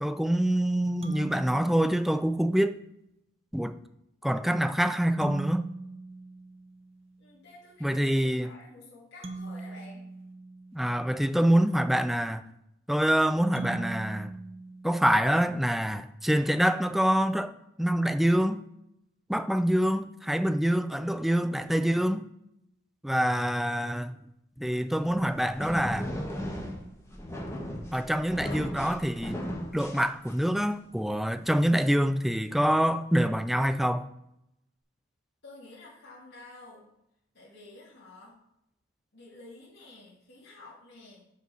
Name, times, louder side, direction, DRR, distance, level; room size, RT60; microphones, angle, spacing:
voice 1, 0.0-2.8 3.5-3.8 4.2-5.7 7.8-8.5 10.7-12.4 12.9-14.3 14.8-17.5 17.8-18.7 19.3-22.3 23.0-24.2 24.6-26.1 27.9-34.1, equal, ahead, 0.3 m, -26 dB
sound 1, 1.0-2.7 5.2-7.2 9.2-11.4 13.6-15.6, right 2 dB, 30° right, 0.8 m, -40 dB
voice 2, 7.2-10.1 35.4-36.9 37.3-38.4 39.1-41.2, left 2 dB, 60° left, 2.4 m, -50 dB
sound 2, 25.0-30.6, equal, 15° left, 1.4 m, -37 dB
5.2 x 5.1 x 6.2 m
head